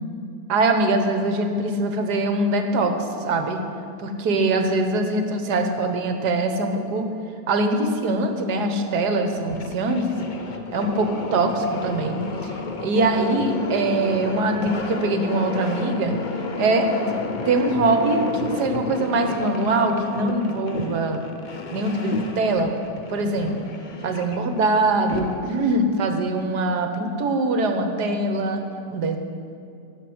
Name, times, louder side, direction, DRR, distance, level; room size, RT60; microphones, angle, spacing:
voice 1, 0.5-3.6 4.0-7.1 7.5-10.0 10.7-12.6 12.8-16.2 16.6-17.2 17.4-21.3 21.7-22.7 23.1-23.7 24.0-28.6 28.9-29.2, right 2 dB, 60° right, 5 dB, 1.5 m, -23 dB
sound 1, 9.3-25.7, left 3 dB, 80° left, 0.4 m, -32 dB
14.5 x 6.3 x 7.9 m, 2.7 s
omnidirectional pair, 2.0 m